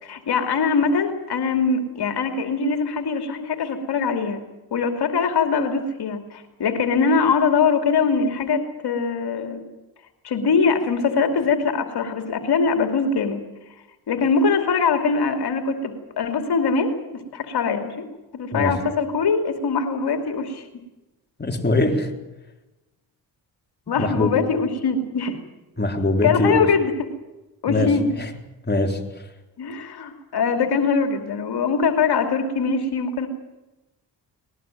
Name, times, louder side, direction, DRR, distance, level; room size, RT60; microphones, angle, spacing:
voice 1, 0.0-4.4 4.7-9.7 10.2-13.4 14.1-18.0 18.3-20.6 23.9-25.4 26.2-27.1 27.6-28.1 29.6-33.3, left 5 dB, 65° left, 5 dB, 2.8 m, -22 dB
voice 2, 18.5-18.9 21.4-22.1 23.9-24.4 25.8-26.7 27.7-28.3 28.7-29.2, left 2 dB, 25° left, 3 dB, 3.9 m, -22 dB
20.5 x 18.5 x 9.2 m, 1.0 s
cardioid pair, 65°, 42 cm